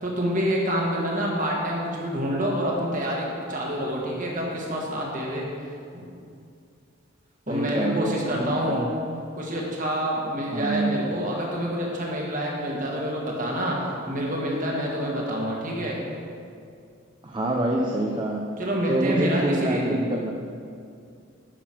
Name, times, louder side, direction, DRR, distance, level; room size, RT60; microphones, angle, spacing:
voice 1, 0.0-5.4 5.9-6.1 7.5-8.9 9.4-16.0 18.6-20.0, equal, 40° right, -2 dB, 1.8 m, -27 dB
voice 2, 7.5-8.9 10.5-11.0 17.2-18.5 18.9-20.3, right 1 dB, 20° right, 0 dB, 0.6 m, -26 dB
10.0 x 6.2 x 6.0 m, 2.4 s
head